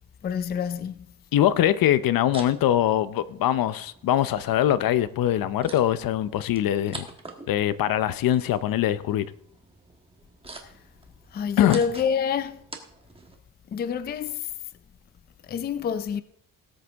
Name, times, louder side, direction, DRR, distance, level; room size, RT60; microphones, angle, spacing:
voice 1, 0.2-1.1 10.6-10.7 11.3-12.6 13.7-14.5 15.5-16.2, left 7 dB, 30° left, 0.4 m, -27 dB
voice 2, 1.3-7.1 7.5-9.3 11.6-11.8, left 11 dB, 75° left, 0.7 m, -22 dB
sound 1, 1.9-13.4, right 3 dB, 15° right, 1.3 m, -46 dB
18.0 x 8.1 x 3.5 m
wide cardioid pair, 175°, 35 cm